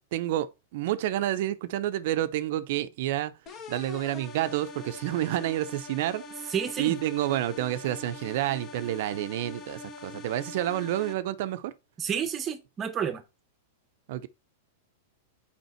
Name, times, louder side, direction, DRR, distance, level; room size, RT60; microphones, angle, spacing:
voice 1, 0.1-3.3 3.7-11.7 14.1-14.3, right 13 dB, 60° right, 0.6 m, -29 dB
sound 1, 3.5-11.1, left 3 dB, 30° left, 1.3 m, -43 dB
voice 2, 6.5-7.0 12.0-13.2, right 8 dB, 25° right, 0.9 m, -30 dB
5.5 x 5.0 x 4.4 m
hypercardioid pair, 135°, 0 cm